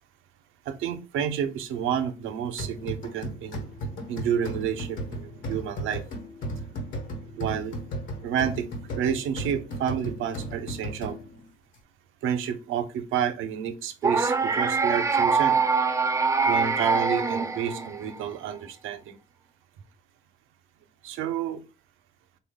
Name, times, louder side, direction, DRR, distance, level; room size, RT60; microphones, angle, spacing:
voice 1, 0.7-3.7 4.1-6.0 7.4-7.8 8.2-11.2 12.2-15.6 16.5-19.2 21.0-21.6, right 8 dB, 85° right, 10 dB, 0.5 m, -30 dB
sound 1, 2.6-11.5, right 1 dB, 70° left, 1.1 m, -35 dB
sound 2, 14.0-18.2, right 4 dB, 15° right, 0.4 m, -24 dB
3.3 x 2.2 x 3.5 m, 0.30 s
cardioid pair, 90°, 20 cm